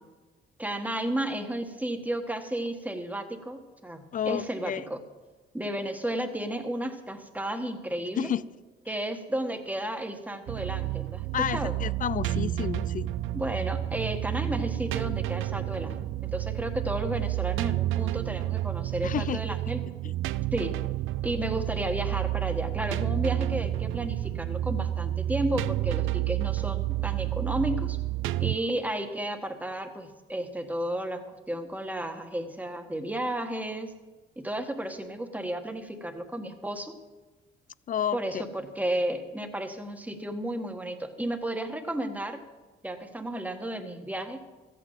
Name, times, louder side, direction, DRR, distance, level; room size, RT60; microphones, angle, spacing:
voice 1, 0.6-5.0 5.5-8.3 8.9-11.3 11.5-11.7 13.3-19.8 20.5-20.8 21.2-28.0 28.4-33.9 34.4-36.9 38.1-42.4 42.8-44.4, right 1 dB, 10° right, 5 dB, 1.6 m, -33 dB
voice 2, 4.1-4.9 8.2-8.4 8.9-9.0 11.3-13.1 19.0-19.6 20.0-20.1 37.9-38.4, left 9 dB, 40° left, 20 dB, 0.4 m, -31 dB
sound 1, 10.5-28.6, right 15 dB, 85° right, 0.5 m, -30 dB
13.5 x 9.1 x 7.5 m, 1.2 s
cardioid pair, 90°, 20 cm